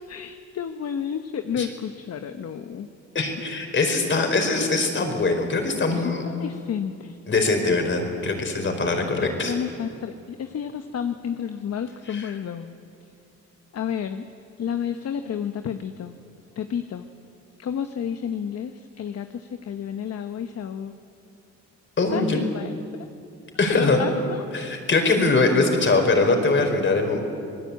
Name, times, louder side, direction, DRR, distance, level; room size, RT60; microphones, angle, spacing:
voice 1, 0.1-2.9 4.1-4.4 5.9-7.2 9.0-12.7 13.7-14.3 14.6-16.1 16.5-17.1 17.6-20.9 22.1-22.8 23.7-24.4, left 8 dB, 55° left, 8 dB, 1.1 m, -31 dB
voice 2, 3.1-6.2 7.3-9.5 12.1-12.3 22.0-22.4 23.6-24.1 24.5-27.2, left 3 dB, 40° left, 4 dB, 4.7 m, -22 dB
26.5 x 20.0 x 8.5 m, 2.5 s
cardioid pair, 90°, 30 cm